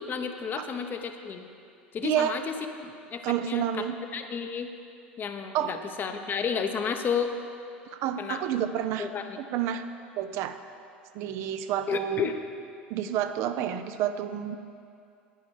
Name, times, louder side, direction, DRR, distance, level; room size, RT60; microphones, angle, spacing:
voice 1, 0.0-1.5 1.9-2.6 2.8-3.9 4.1-4.7 5.2-7.3 8.2-8.4 9.0-9.4 11.9-12.3, left 6 dB, 35° left, 6 dB, 0.8 m, -32 dB
voice 2, 2.0-2.4 3.2-4.0 5.5-5.7 7.9-9.1 9.4-9.9 10.2-10.6 11.1-12.3 12.9-14.6, right 10 dB, 50° right, 9 dB, 0.5 m, -29 dB
10.0 x 9.4 x 4.8 m, 2.5 s
figure-of-eight pair, 75°, 6 cm